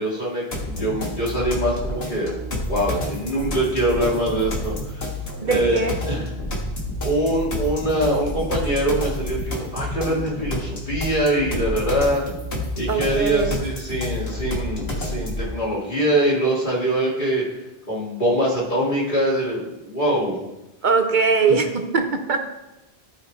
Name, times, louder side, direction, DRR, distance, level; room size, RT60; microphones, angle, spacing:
voice 1, 0.0-2.3 2.7-5.0 5.4-6.3 7.0-12.2 12.8-17.4 17.9-20.5 21.5-21.6, right 1 dB, 50° left, -4 dB, 2.4 m, -23 dB
sound 1, 0.5-15.5, left 1 dB, 70° left, 1.8 m, -29 dB
voice 2, 5.4-6.0 12.9-13.6 20.8-22.4, right 4 dB, 50° right, 5 dB, 0.8 m, -21 dB
12.5 x 4.9 x 4.4 m, 0.97 s
omnidirectional pair, 1.1 m